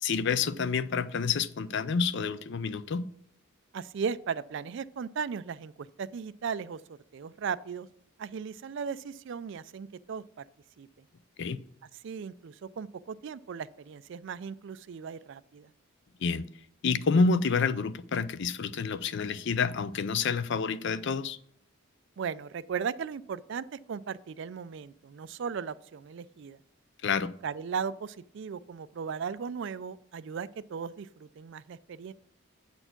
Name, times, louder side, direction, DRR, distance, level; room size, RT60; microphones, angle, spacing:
voice 1, 0.0-3.1 11.4-11.6 16.2-16.5 16.8-21.4 27.0-27.3, left 5 dB, 55° left, 15 dB, 0.4 m, -28 dB
voice 2, 3.7-7.9 8.2-10.4 10.8-11.1 11.9-15.7 22.2-26.6 27.4-32.1, right 6 dB, 55° right, 16 dB, 0.3 m, -37 dB
7.9 x 4.4 x 5.8 m, 0.69 s
head